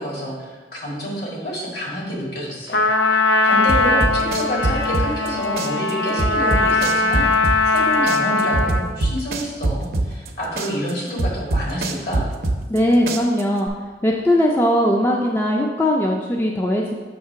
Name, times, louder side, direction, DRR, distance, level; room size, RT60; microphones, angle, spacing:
voice 1, 0.0-12.2, equal, 60° left, -4 dB, 1.8 m, -28 dB
Trumpet, 2.7-8.9, left 3 dB, 75° left, 0.5 m, -20 dB
sound 1, 3.7-5.3 5.6-7.8 8.1-10.3 10.6-12.8 13.1-13.7, right 2 dB, 55° right, 0.5 m, -23 dB
voice 2, 12.7-13.7 14.0-16.9, equal, 10° left, -1 dB, 0.3 m, -19 dB
6.6 x 2.9 x 5.6 m, 1.3 s
head